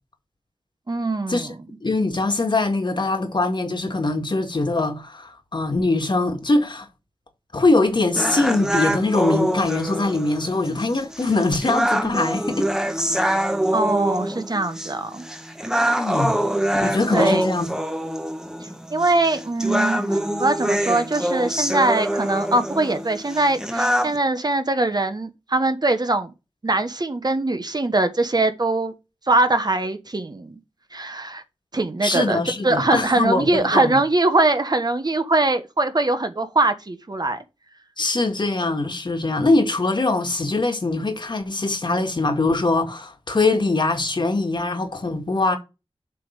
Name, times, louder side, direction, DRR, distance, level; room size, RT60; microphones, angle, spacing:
voice 1, 0.9-1.6 13.7-15.2 17.1-17.5 18.9-26.3 26.6-28.9 29.3-30.6 30.9-31.4 31.7-37.4, right 2 dB, 45° right, 1.2 m, -22 dB
voice 2, 1.8-6.9 7.5-12.7 13.1-13.4 15.9-16.4 16.8-17.7 32.0-34.0 38.0-45.6, left 2 dB, 50° left, 1.9 m, -22 dB
sound 1, 8.2-24.2, right 1 dB, 5° right, 1.1 m, -25 dB
7.6 x 3.6 x 6.5 m
wide cardioid pair, 60°, 10 cm